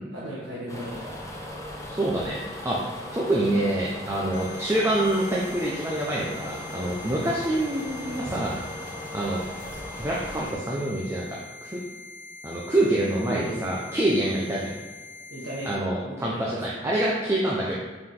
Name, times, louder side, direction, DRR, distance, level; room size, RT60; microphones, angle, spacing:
voice 1, 0.1-1.1 8.3-8.5 13.3-13.7 15.3-16.7, right 1 dB, 80° right, -8 dB, 1.4 m, -36 dB
sound 1, 0.7-10.5, left 1 dB, 15° left, 0.9 m, -38 dB
voice 2, 1.9-2.4 2.6-8.5 9.1-9.4 10.0-11.2 11.6-11.8 12.4-14.7 15.6-17.8, right 1 dB, 15° right, -5 dB, 0.7 m, -26 dB
sound 2, 4.3-15.7, left 2 dB, 70° left, 1.6 m, -44 dB
5.8 x 4.9 x 3.8 m, 1.4 s
head